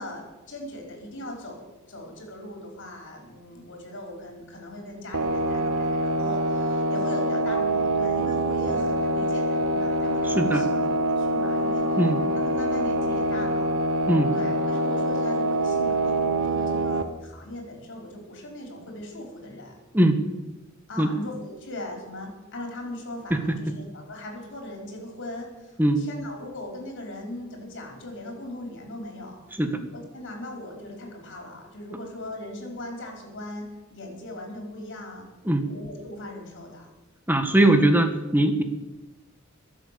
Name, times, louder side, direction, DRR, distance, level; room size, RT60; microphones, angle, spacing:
voice 1, 0.0-11.8 12.4-13.7 14.3-19.7 20.9-29.4 29.9-35.3 35.7-36.9 37.6-37.7, left 1 dB, 60° left, 2 dB, 4.7 m, -39 dB
sound 1, 5.1-17.0, right 1 dB, 85° right, 1.3 m, -25 dB
voice 2, 37.3-38.6, right 1 dB, 10° right, 7 dB, 1.5 m, -20 dB
22.0 x 7.7 x 6.9 m, 1.1 s
head